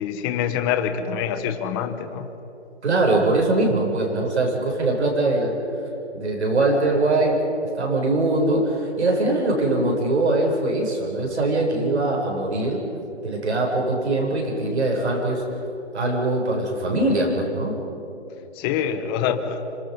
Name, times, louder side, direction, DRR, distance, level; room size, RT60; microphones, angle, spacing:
voice 1, 0.0-2.3 4.4-4.5 18.6-19.6, left 8 dB, 20° left, 8 dB, 1.2 m, -25 dB
voice 2, 2.8-5.5 6.1-7.4 7.7-12.8 13.2-15.6 15.9-17.7, right 2 dB, 75° right, 0 dB, 7.7 m, -22 dB
29.5 x 26.5 x 5.5 m, 3.0 s
hypercardioid pair, 145°, 34 cm